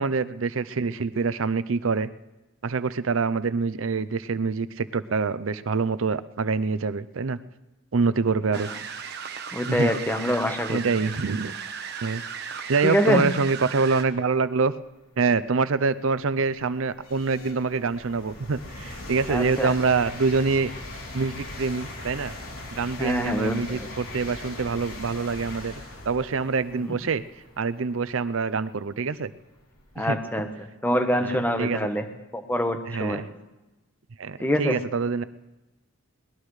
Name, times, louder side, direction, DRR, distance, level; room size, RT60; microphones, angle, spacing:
voice 1, 0.0-2.1 2.6-7.4 7.9-8.7 9.7-9.9 10.7-11.5 12.0-12.2 12.7-14.7 15.2-20.7 21.1-22.3 22.7-25.7 26.1-27.2 27.6-29.3 30.0-30.2 31.2-31.8 32.9-33.3 34.2-35.2, right 4 dB, 70° right, 15 dB, 0.6 m, -25 dB
sound 1, 8.5-14.0, right 6 dB, 50° right, 1.2 m, -36 dB
voice 2, 9.5-10.8 12.8-13.3 19.3-19.7 23.0-23.9 26.7-26.9 29.9-32.1 32.3-33.2 34.4-34.8, equal, 10° left, 6 dB, 1.2 m, -25 dB
sound 2, 14.6-14.7 15.3-30.1, left 2 dB, 90° left, 3.3 m, -41 dB
22.0 x 19.5 x 3.3 m, 1.1 s
head